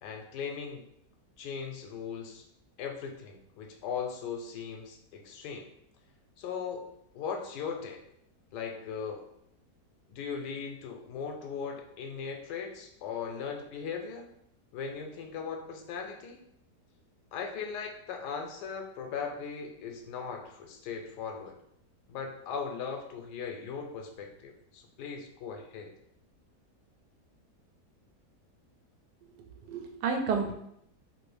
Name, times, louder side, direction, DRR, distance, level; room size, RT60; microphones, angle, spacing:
voice 1, 0.0-0.8 1.4-2.4 2.8-5.7 6.4-6.9 7.1-8.0 8.5-9.2 10.1-14.3 14.7-16.4 17.3-21.5 22.1-25.9, left 6 dB, 85° left, 4 dB, 1.2 m, -38 dB
voice 2, 29.4-30.5, right 5 dB, 85° right, 2 dB, 1.2 m, -31 dB
3.0 x 2.6 x 3.3 m, 0.74 s
omnidirectional pair, 1.8 m